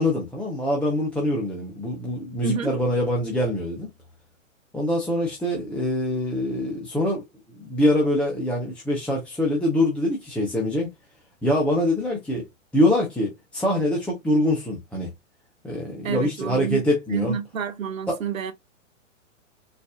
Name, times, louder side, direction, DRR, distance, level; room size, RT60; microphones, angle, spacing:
voice 1, 0.0-3.9 4.7-7.2 7.6-10.9 11.4-12.5 12.7-15.1 15.6-17.4 18.1-18.2, left 1 dB, 5° left, 0.5 m, -24 dB
voice 2, 2.4-2.7 16.0-16.8 17.1-18.5, right 6 dB, 80° right, 0.8 m, -28 dB
4.1 x 2.6 x 2.3 m
hypercardioid pair, 115°, 39 cm